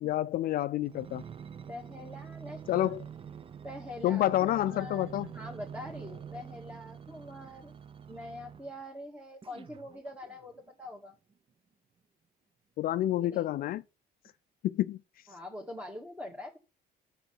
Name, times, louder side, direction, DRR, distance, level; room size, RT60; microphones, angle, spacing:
voice 1, 0.0-1.2 2.7-3.0 4.0-5.3 12.8-13.8 14.6-15.0, left 13 dB, 60° left, 0.4 m, -28 dB
sound 1, 0.9-8.8 9.4-10.7 11.3-11.4, right 7 dB, 30° right, 0.6 m, -46 dB
voice 2, 1.7-3.0 3.6-7.7 8.1-11.2 13.2-13.4 15.3-16.6, left 1 dB, 10° right, 1.9 m, -44 dB
6.9 x 6.6 x 5.4 m
cardioid pair, 110°, 17 cm